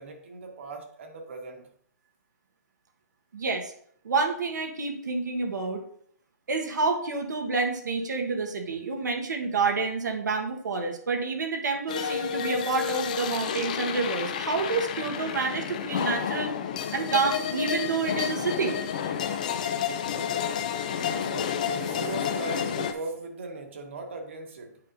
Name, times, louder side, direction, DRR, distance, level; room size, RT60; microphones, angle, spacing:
voice 1, 0.0-1.7 21.1-24.8, right 3 dB, 45° right, 3 dB, 1.4 m, -38 dB
voice 2, 3.3-3.7 4.0-5.8 6.5-16.5 16.9-19.0, right 4 dB, 85° right, 3 dB, 1.3 m, -28 dB
sound 1, 11.9-22.9, left 8 dB, 25° left, 0.4 m, -30 dB
9.2 x 5.0 x 2.6 m, 0.62 s
hypercardioid pair, 175°, 9 cm